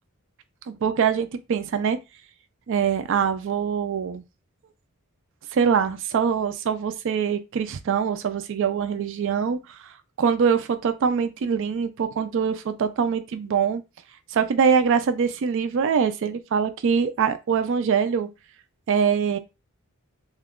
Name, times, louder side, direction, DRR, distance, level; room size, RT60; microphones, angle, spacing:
voice 1, 0.7-2.0 2.7-4.2 5.5-9.9 10.2-13.8 14.3-18.3 18.9-19.4, right 6 dB, 60° right, 0.4 m, -23 dB
2.9 x 2.3 x 3.5 m
head